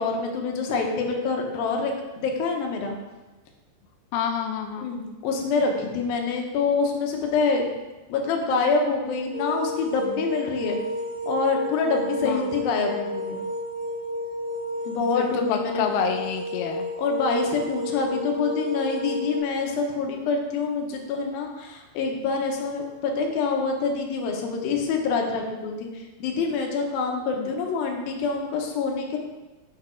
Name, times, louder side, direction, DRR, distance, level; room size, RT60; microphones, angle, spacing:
voice 1, 0.0-2.9 4.8-7.7 8.1-10.8 11.3-13.4 14.9-15.8 17.0-29.2, left 4 dB, 70° left, 2 dB, 2.4 m, -26 dB
voice 2, 4.1-4.9 12.2-12.5 15.1-16.9 27.4-27.5, left 7 dB, 90° left, 5 dB, 2.2 m, -28 dB
sound 1, 9.3-19.4, equal, 35° left, 1.9 m, -32 dB
6.6 x 5.9 x 4.4 m, 1.1 s
omnidirectional pair, 5.0 m